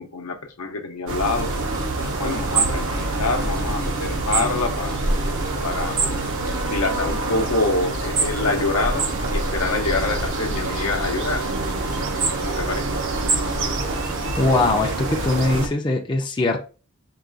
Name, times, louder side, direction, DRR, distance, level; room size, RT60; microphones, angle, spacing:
voice 1, 0.0-1.7 2.0-5.0 5.6-6.0 6.7-11.4 12.4-12.8, left 3 dB, 70° left, 0.8 m, -26 dB
sound 1, 1.1-15.7, right 3 dB, 60° right, 0.8 m, -25 dB
sound 2, 1.2-15.6, right 1 dB, 15° right, 0.7 m, -38 dB
voice 2, 14.4-16.6, left 2 dB, 20° left, 0.5 m, -21 dB
4.7 x 2.4 x 3.9 m
head